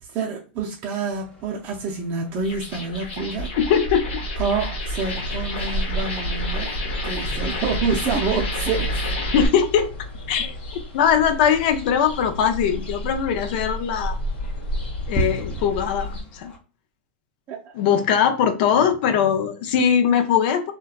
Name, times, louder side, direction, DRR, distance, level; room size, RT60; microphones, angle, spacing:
voice 1, 0.0-3.5 4.4-6.7 7.0-8.9 17.5-17.8, right 5 dB, 35° right, 0.5 m, -27 dB
sound 1, 1.1-16.6, right 1 dB, 15° left, 0.6 m, -40 dB
sound 2, 2.4-9.5, left 1 dB, 90° left, 1.0 m, -28 dB
voice 2, 3.7-4.1 9.3-9.9 10.3-10.5 10.9-14.2 15.1-16.5 17.7-20.7, left 8 dB, 55° left, 0.5 m, -20 dB
sound 3, 5.0-16.2, left 1 dB, 70° left, 1.3 m, -32 dB
2.8 x 2.3 x 2.3 m
supercardioid pair, 135°, 6 cm